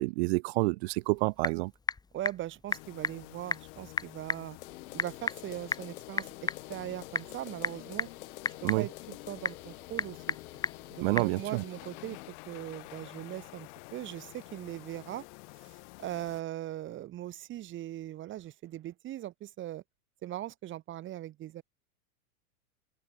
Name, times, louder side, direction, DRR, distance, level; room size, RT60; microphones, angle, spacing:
voice 1, 0.0-1.7 8.6-8.9 11.0-11.6, right 24 dB, 45° right, 0.5 m, -28 dB
Typing / Telephone, 0.9-11.4, left 4 dB, 10° left, 1.4 m, -37 dB
voice 2, 2.1-4.6 4.9-6.3 6.7-8.1 8.6-10.4 10.9-15.2 15.6-19.8 20.2-21.6, right 13 dB, 25° right, 1.1 m, -40 dB
sound 1, 2.7-16.4, left 31 dB, 50° left, 1.7 m, -49 dB
Guitar, 4.6-12.3, left 15 dB, 70° left, 2.7 m, -50 dB
open air
hypercardioid pair, 125°, 45 cm